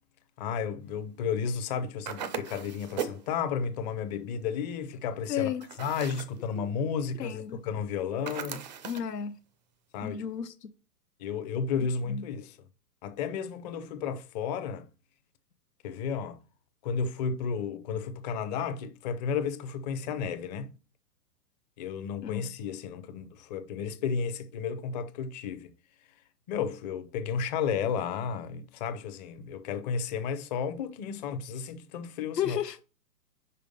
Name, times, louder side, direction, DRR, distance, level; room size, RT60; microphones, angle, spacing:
voice 1, 0.4-5.5 5.8-8.6 9.9-10.2 11.2-12.6 13.0-14.9 15.8-16.4 16.8-20.7 21.8-25.7 26.5-32.6, left 6 dB, 25° left, 0.6 m, -33 dB
sound 1, 2.1-3.3 5.6-6.4 8.3-9.1, right 8 dB, 30° right, 0.4 m, -37 dB
voice 2, 5.3-5.7 6.6-6.7 7.2-7.6 8.8-9.4 10.0-10.7 12.1-12.2 22.2-22.5 32.4-32.8, left 9 dB, 85° left, 0.8 m, -33 dB
5.6 x 4.7 x 5.2 m
hypercardioid pair, 120°, 48 cm